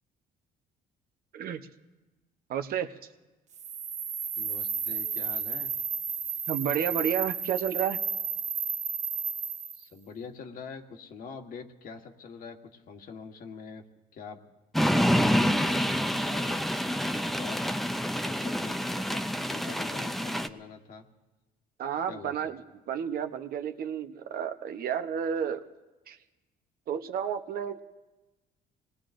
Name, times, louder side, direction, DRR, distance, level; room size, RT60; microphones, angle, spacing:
voice 1, 2.5-2.9 6.5-8.0 21.8-22.6 22.9-25.6 26.1-26.2 26.9-27.8, right 8 dB, 60° right, 7 dB, 0.9 m, -31 dB
sound 1, 3.5-9.8, right 6 dB, 45° right, 0.6 m, -32 dB
voice 2, 4.4-5.7 9.7-13.8 14.1-14.4 14.9-16.6 17.4-17.6 18.2-21.0 22.1-22.5, left 5 dB, 55° left, 4 dB, 1.5 m, -44 dB
sound 2, 14.7-20.5, equal, ahead, 0.5 m, -27 dB
26.0 x 20.0 x 2.6 m, 1.2 s
cardioid pair, 110°, 17 cm